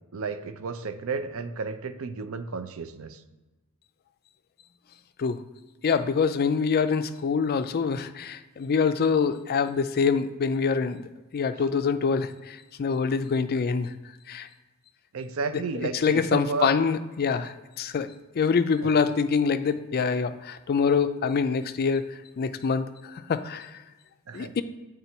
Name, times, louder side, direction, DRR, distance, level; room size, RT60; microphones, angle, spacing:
voice 1, 0.1-3.2 15.1-16.7 18.8-18.9 24.3-24.5, right 4 dB, 65° right, 10 dB, 0.5 m, -32 dB
voice 2, 5.8-11.1 11.3-13.9 14.3-14.5 15.9-18.1 18.4-22.0 22.4-22.9 23.3-23.7 24.3-24.6, left 5 dB, 45° left, 11 dB, 0.4 m, -25 dB
8.1 x 3.7 x 4.4 m, 1.2 s
head